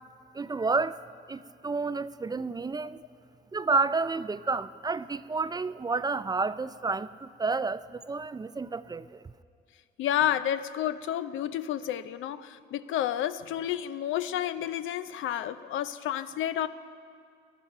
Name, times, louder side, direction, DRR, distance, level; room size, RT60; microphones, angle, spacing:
voice 1, 0.3-1.0 1.3-3.0 3.5-9.2, right 3 dB, 20° right, 0.3 m, -30 dB
voice 2, 10.0-16.7, left 11 dB, 80° left, 0.6 m, -30 dB
18.5 x 12.0 x 5.4 m
cardioid pair, 90°, 20 cm